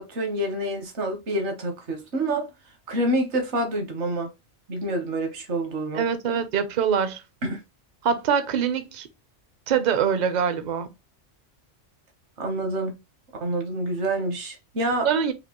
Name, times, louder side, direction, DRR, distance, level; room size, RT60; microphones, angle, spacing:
voice 1, 0.0-2.5 2.9-4.3 4.7-6.0 7.4-7.6 12.4-13.0 13.4-15.1, right 1 dB, 65° right, 1.3 m, -27 dB
voice 2, 5.9-7.2 8.0-9.1 9.7-10.9 15.0-15.3, right 7 dB, 50° right, 0.6 m, -24 dB
5.1 x 2.5 x 3.0 m
omnidirectional pair, 1.3 m